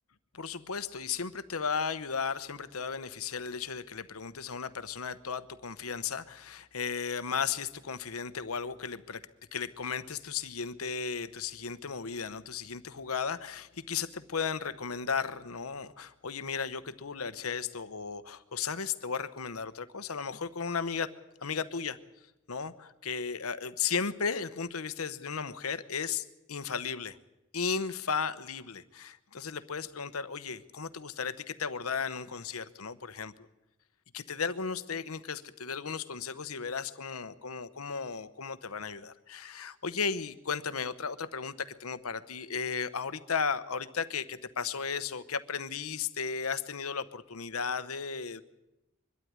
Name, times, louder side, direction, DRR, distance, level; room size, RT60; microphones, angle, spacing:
voice 1, 0.3-9.2 9.5-21.1 21.4-22.0 22.5-27.2 27.5-33.3 34.1-48.4, left 6 dB, 75° left, 13 dB, 1.0 m, -35 dB
23.0 x 12.5 x 9.6 m, 0.94 s
head